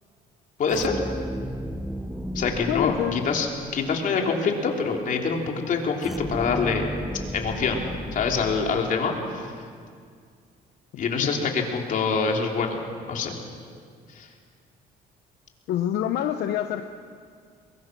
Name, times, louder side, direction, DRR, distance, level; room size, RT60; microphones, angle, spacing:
voice 1, 0.6-0.9 2.3-3.5 3.7-6.8 7.3-7.8 8.1-9.5 11.0-12.8 13.1-13.3 14.1-14.3, left 5 dB, 50° left, 1 dB, 3.3 m, -25 dB
sound 1, 0.7-4.0 6.0-9.3, equal, ahead, 1.0 m, -34 dB
voice 2, 2.7-3.3 11.2-11.3 15.7-16.9, left 11 dB, 75° left, 7 dB, 0.9 m, -26 dB
22.5 x 22.0 x 6.2 m, 2.1 s
cardioid pair, 110°, 17 cm